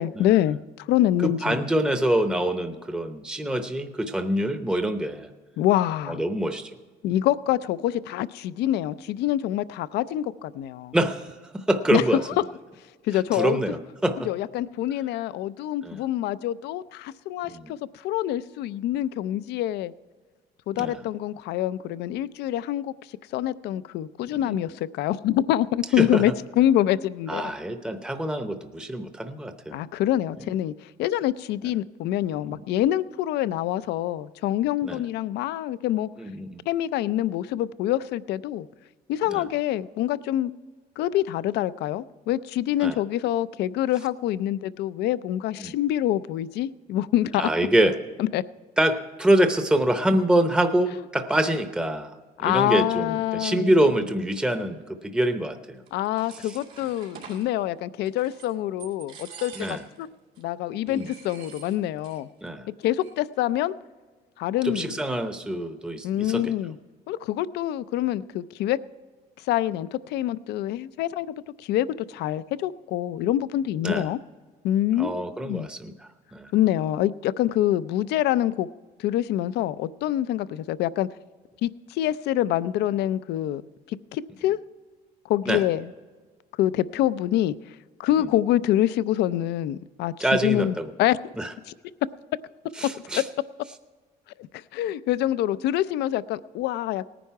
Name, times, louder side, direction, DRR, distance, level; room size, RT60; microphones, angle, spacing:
voice 1, 0.0-1.6 5.6-6.2 7.0-10.9 11.9-12.0 13.0-13.6 14.3-17.8 18.0-19.9 20.7-22.9 23.3-27.5 29.7-36.1 36.7-38.7 39.1-40.5 41.0-47.5 48.2-48.4 52.4-53.8 55.9-60.1 60.4-62.3 62.8-63.7 64.4-64.9 66.0-66.8 67.1-68.8 69.5-71.3 71.6-74.2 74.6-75.7 76.5-78.7 79.0-81.1 81.6-83.6 83.9-84.6 85.3-85.9 86.6-87.6 88.0-90.1 90.4-91.3 91.7-91.8 94.7-97.0, left 13 dB, 80° left, 16 dB, 0.5 m, -26 dB
voice 2, 1.2-5.3 6.1-6.7 10.9-12.4 13.1-14.3 15.8-16.0 17.5-17.7 20.8-21.0 24.4-24.6 26.0-26.2 27.3-29.8 32.5-32.6 34.8-35.0 36.2-36.6 39.3-39.4 42.8-43.0 45.6-45.7 47.4-48.0 48.8-52.1 52.4-55.8 56.4-56.6 59.6-59.8 60.9-61.1 62.4-62.7 64.6-66.5 73.8-74.1 75.0-76.5 85.5-85.6 90.2-90.9 91.4-91.5 92.8-93.2, right 1 dB, 5° right, 8 dB, 0.7 m, -25 dB
sound 1, 55.9-57.5 58.0-58.5 58.8-60.0 60.3-60.4 60.9-62.2 62.5-62.6 62.8-63.3, right 7 dB, 80° right, 2.4 m, -46 dB
18.0 x 10.0 x 4.7 m, 1.4 s
cardioid pair, 110°, 17 cm